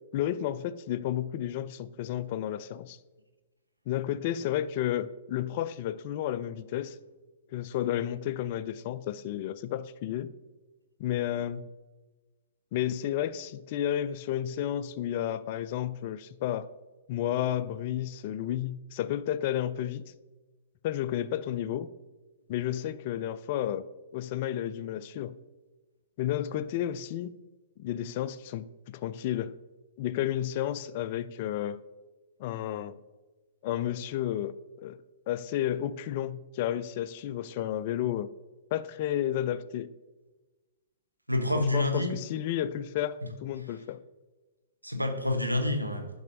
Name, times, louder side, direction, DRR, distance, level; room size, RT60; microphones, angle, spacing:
voice 1, 0.1-3.0 3.9-7.0 7.5-10.3 11.0-11.7 12.7-16.7 17.1-20.0 20.8-21.9 22.5-23.9 24.1-25.3 26.2-27.3 27.8-29.5 30.0-31.8 32.4-33.0 33.6-34.5 34.8-35.0 35.3-38.3 38.7-39.9 41.6-44.0, left 11 dB, 45° left, 0.3 m, -32 dB
voice 2, 41.3-42.2 44.8-46.1, left 1 dB, 90° right, 0.9 m, -28 dB
10.5 x 5.5 x 2.5 m
figure-of-eight pair, 110°, 0 cm